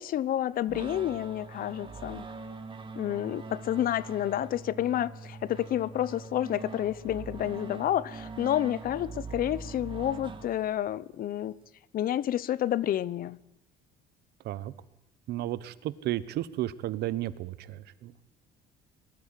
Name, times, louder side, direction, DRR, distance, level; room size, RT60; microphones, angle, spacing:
voice 1, 0.0-2.3 3.0-11.6 11.9-13.4, left 12 dB, 60° left, 0.9 m, -29 dB
sound 1, 0.7-10.9, right 4 dB, 30° right, 2.2 m, -43 dB
voice 2, 15.3-18.1, right 14 dB, 75° right, 1.1 m, -33 dB
22.0 x 13.0 x 10.0 m
cardioid pair, 110°, 17 cm